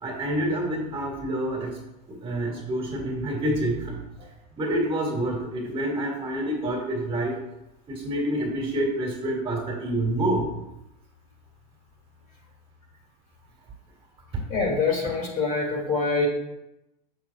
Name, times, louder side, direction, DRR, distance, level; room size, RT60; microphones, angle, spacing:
voice 1, 0.0-1.7 2.1-4.0 4.6-7.4 7.9-10.5 14.3-14.4, right 1 dB, 25° right, 0 dB, 2.0 m, -27 dB
voice 2, 14.5-16.3, left 4 dB, 40° left, 0 dB, 2.3 m, -25 dB
7.0 x 6.3 x 2.4 m, 0.88 s
supercardioid pair, 115°, 21 cm